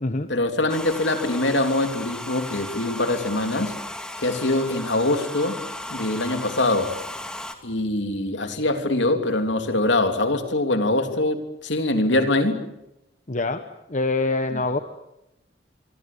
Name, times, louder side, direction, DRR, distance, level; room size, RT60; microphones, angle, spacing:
voice 1, 0.3-3.7 4.2-5.6 5.9-7.0 7.6-12.6 14.5-14.6, left 2 dB, 65° left, 7 dB, 3.1 m, -23 dB
Domestic sounds home sounds, 0.7-7.6, left 1 dB, 5° left, 2.3 m, -36 dB
voice 2, 13.3-13.6 13.9-14.8, left 3 dB, 40° left, 8 dB, 1.2 m, -24 dB
25.5 x 24.5 x 8.6 m, 0.88 s
head